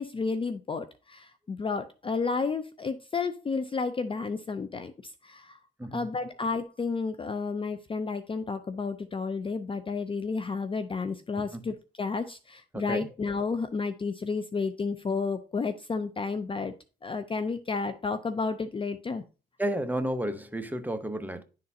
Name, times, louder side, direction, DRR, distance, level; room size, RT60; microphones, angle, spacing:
voice 1, 0.0-5.6 5.9-16.7 17.0-19.2, left 4 dB, 25° left, 0.5 m, -31 dB
voice 2, 12.7-13.1 19.6-21.4, right 1 dB, 10° right, 0.8 m, -31 dB
10.5 x 3.9 x 2.7 m
cardioid pair, 90°, 20 cm